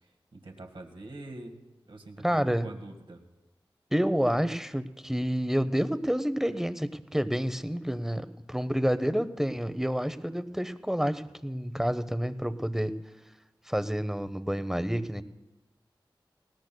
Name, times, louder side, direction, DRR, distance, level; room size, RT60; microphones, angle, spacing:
voice 1, 0.0-1.6 1.9-3.2, right 2 dB, 70° right, 3 dB, 1.7 m, -45 dB
voice 2, 2.2-2.7 3.9-12.9 13.7-15.2, equal, 5° right, 12 dB, 0.7 m, -29 dB
20.0 x 18.5 x 2.3 m, 1.0 s
cardioid pair, 40°, 9 cm